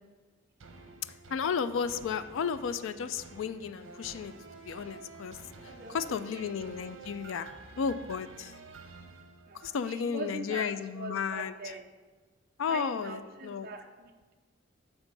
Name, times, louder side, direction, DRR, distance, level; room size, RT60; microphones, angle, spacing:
sound 1, 0.6-10.0 10.5-10.6, right 3 dB, 80° right, 1.0 m, -50 dB
voice 1, 1.3-4.3 4.7-5.4 5.6-7.5 7.8-8.5 9.6-11.7 12.6-13.7, left 6 dB, 70° left, 12 dB, 0.3 m, -33 dB
voice 2, 5.7-6.6 9.5-11.8 12.6-14.3, right 3 dB, 45° right, 3 dB, 0.6 m, -43 dB
9.0 x 3.5 x 6.7 m, 1.3 s
head